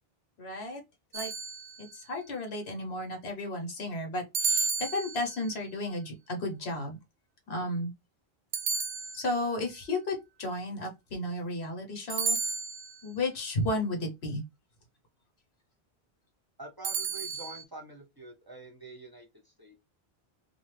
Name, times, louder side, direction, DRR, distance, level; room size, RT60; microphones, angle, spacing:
voice 1, 0.4-0.8 1.1-1.3 1.8-7.0 7.5-7.9 9.1-12.4 13.0-14.4, left 1 dB, 85° left, 1.3 m, -33 dB
sound 1, 1.1-2.1 4.3-5.6 8.5-9.6 12.1-13.1 16.8-17.6, right 5 dB, 60° right, 0.6 m, -32 dB
voice 2, 16.6-19.7, right 2 dB, 25° right, 0.7 m, -46 dB
2.7 x 2.5 x 3.1 m
omnidirectional pair, 1.0 m